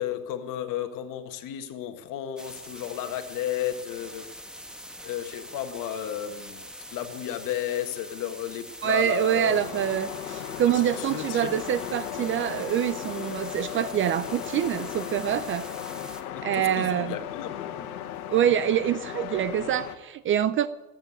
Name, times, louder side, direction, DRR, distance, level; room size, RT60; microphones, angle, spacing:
voice 1, 0.0-4.3 5.0-6.6 6.9-9.6 10.7-11.5 16.3-17.9, left 11 dB, 45° left, 1.8 m, -33 dB
sound 1, 2.4-16.2, equal, ahead, 1.3 m, -43 dB
voice 2, 8.8-15.7 16.4-17.2 18.3-20.7, right 10 dB, 30° right, 0.5 m, -25 dB
sound 2, 9.2-20.0, left 10 dB, 80° left, 1.5 m, -36 dB
14.5 x 9.2 x 9.5 m
hypercardioid pair, 105°, 43 cm